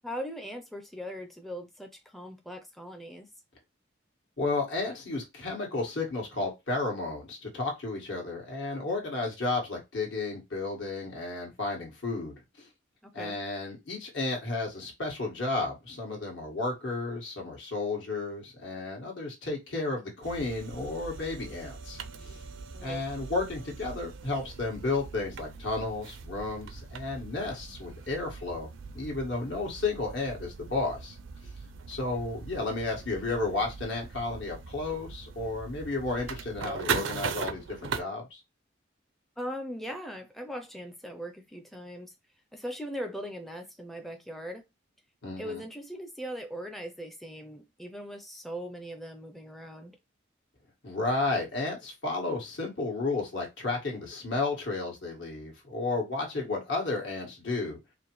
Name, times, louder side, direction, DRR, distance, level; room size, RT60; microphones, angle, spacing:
voice 1, 0.0-3.3 13.0-13.4 22.7-23.0 39.4-42.1 42.5-44.6 45.4-50.0, equal, ahead, 0.4 m, -40 dB
voice 2, 4.4-12.3 13.1-22.4 22.8-28.7 28.9-31.2 31.9-38.4 45.2-45.6 50.8-57.8, left 3 dB, 75° left, 1.7 m, -32 dB
sound 1, 20.2-38.0, right 5 dB, 90° right, 0.5 m, -40 dB
4.8 x 2.1 x 3.0 m
head